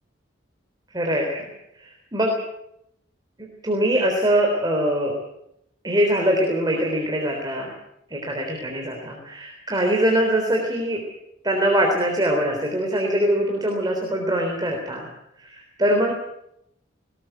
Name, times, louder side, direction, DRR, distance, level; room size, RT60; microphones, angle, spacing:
voice 1, 0.9-1.4 1.8-2.4 3.4-5.1 5.8-7.7 8.1-11.0 11.4-15.1 15.4-16.1, right 1 dB, 20° right, 1 dB, 3.7 m, -23 dB
21.0 x 18.0 x 8.0 m, 0.80 s
head